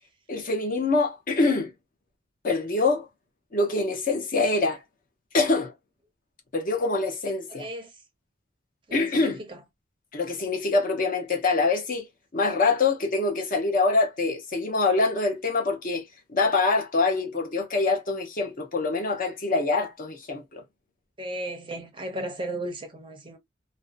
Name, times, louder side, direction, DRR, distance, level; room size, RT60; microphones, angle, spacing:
voice 1, 0.3-1.7 2.4-3.1 3.5-4.8 5.3-5.7 6.5-7.7 8.9-9.4 10.1-12.1 12.3-16.0 16.3-20.6, left 3 dB, 45° left, 0.7 m, -25 dB
voice 2, 7.5-8.0 8.9-9.6 21.2-23.4, right 1 dB, 25° right, 0.6 m, -35 dB
2.6 x 2.1 x 2.4 m
head